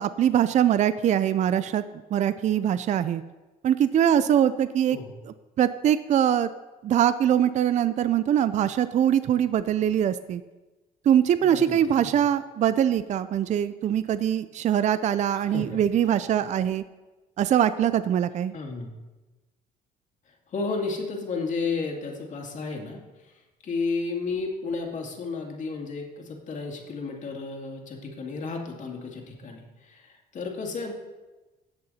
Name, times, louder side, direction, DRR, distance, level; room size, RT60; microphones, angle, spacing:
voice 1, 0.0-1.8 2.1-3.2 3.6-5.0 5.3-6.5 6.8-10.4 11.1-16.8 17.4-18.5, right 10 dB, 45° right, 14 dB, 0.4 m, -23 dB
voice 2, 11.4-12.2 15.3-15.8 18.5-18.9 20.5-23.0 23.6-30.9, left 4 dB, 50° left, 1 dB, 2.4 m, -32 dB
16.5 x 6.7 x 4.2 m, 1.1 s
cardioid pair, 110°, 17 cm